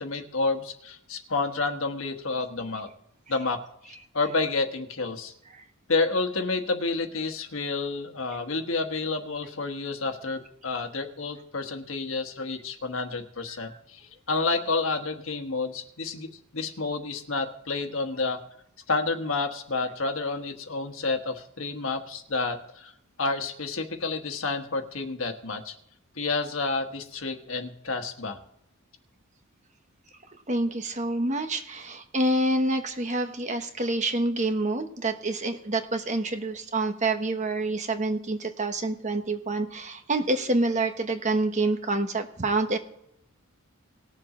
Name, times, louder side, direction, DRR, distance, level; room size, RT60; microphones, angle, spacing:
voice 1, 0.0-2.9 3.3-3.6 3.9-5.3 5.9-18.4 18.9-22.9 23.2-25.7 26.1-28.4, left 3 dB, 65° left, 6 dB, 1.3 m, -30 dB
voice 2, 30.5-42.8, right 2 dB, 35° right, 7 dB, 1.2 m, -27 dB
19.5 x 7.3 x 3.8 m, 0.76 s
head